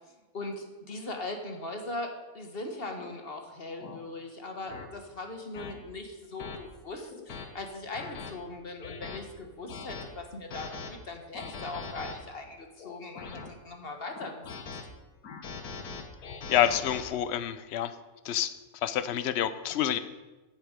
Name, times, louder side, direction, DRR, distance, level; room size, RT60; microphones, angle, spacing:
voice 1, 0.3-14.5, left 2 dB, 40° left, 4 dB, 1.5 m, -40 dB
sound 1, 3.0-3.2 3.8-4.0 4.7-4.9 5.5-5.7 6.4-6.6 7.1-7.5 7.9-8.3 8.8-9.2 9.7-10.1 10.5-10.9 11.3-12.1 12.8-13.5 14.1-14.8 15.2-17.0, left 5 dB, 90° left, 1.6 m, -41 dB
voice 2, 16.5-18.0 18.2-20.0, left 11 dB, 60° left, 12 dB, 0.8 m, -28 dB
14.5 x 7.3 x 5.1 m, 1.2 s
omnidirectional pair, 1.6 m